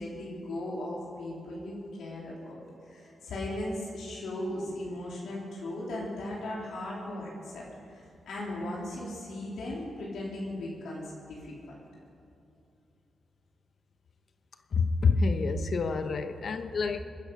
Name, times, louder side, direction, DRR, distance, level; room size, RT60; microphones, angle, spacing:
voice 1, 0.0-11.8, left 1 dB, 85° left, -5 dB, 3.5 m, -37 dB
voice 2, 14.7-17.0, left 4 dB, 60° left, 9 dB, 0.9 m, -27 dB
21.5 x 10.0 x 5.4 m, 2.7 s
cardioid pair, 70°, 0 cm